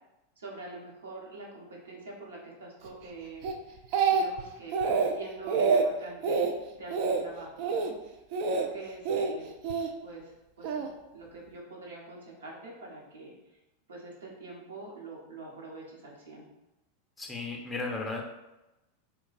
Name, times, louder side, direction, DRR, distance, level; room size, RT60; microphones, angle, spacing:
voice 1, 0.4-3.5 4.1-7.9 8.5-9.6 10.0-10.9 11.1-13.6 13.9-16.5, right 3 dB, 80° right, -3 dB, 0.8 m, -45 dB
Speech, 3.4-4.4 4.7-5.1 5.5-5.8 6.2-6.5 6.9-7.2 7.6-7.9 8.3-8.7 9.1-9.9 10.6-10.9, right 5 dB, 55° right, 0.3 m, -26 dB
voice 2, 17.2-18.2, left 3 dB, 15° left, 0 dB, 0.6 m, -34 dB
2.3 x 2.2 x 3.9 m, 0.98 s
hypercardioid pair, 95°, 0 cm